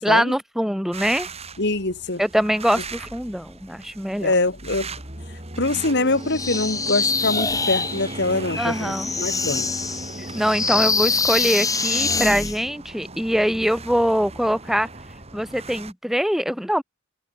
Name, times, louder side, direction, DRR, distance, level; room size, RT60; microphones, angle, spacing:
voice 1, 0.0-1.3 2.2-4.3 8.6-9.1 10.4-14.9 15.3-16.8, equal, ahead, 5.2 m, -23 dB
sound 1, 0.9-15.9, right 2 dB, 30° right, 7.2 m, -37 dB
voice 2, 1.6-2.2 4.2-4.9 5.6-9.7, left 2 dB, 60° left, 2.7 m, -24 dB
sound 2, 6.3-12.6, left 4 dB, 20° left, 5.8 m, -24 dB
head